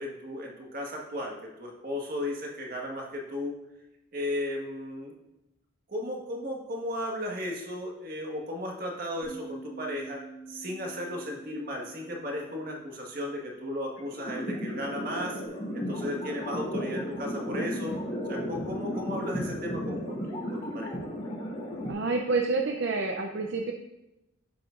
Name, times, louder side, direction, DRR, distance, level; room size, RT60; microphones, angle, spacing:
voice 1, 0.0-3.5 4.1-5.1 5.9-10.2 10.5-15.4 15.7-18.0 18.3-20.9, left 1 dB, 45° right, -1 dB, 1.6 m, -35 dB
Bass guitar, 9.2-15.5, right 3 dB, 70° left, 2.4 m, -48 dB
sound 1, 14.0-21.9, equal, 40° left, 2.9 m, -34 dB
voice 2, 21.9-23.7, right 3 dB, 65° right, 3 dB, 0.6 m, -28 dB
11.5 x 7.5 x 2.5 m, 0.94 s
head